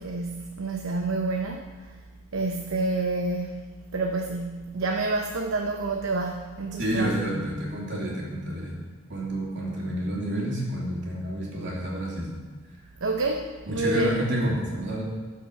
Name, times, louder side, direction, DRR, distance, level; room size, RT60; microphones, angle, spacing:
voice 1, 0.0-2.0 2.3-7.1 13.0-14.2, right 3 dB, 70° right, 2 dB, 0.8 m, -29 dB
voice 2, 6.8-8.7 9.1-12.3 13.7-15.0, equal, 55° right, -4 dB, 3.2 m, -29 dB
12.5 x 5.8 x 7.0 m, 1.4 s
head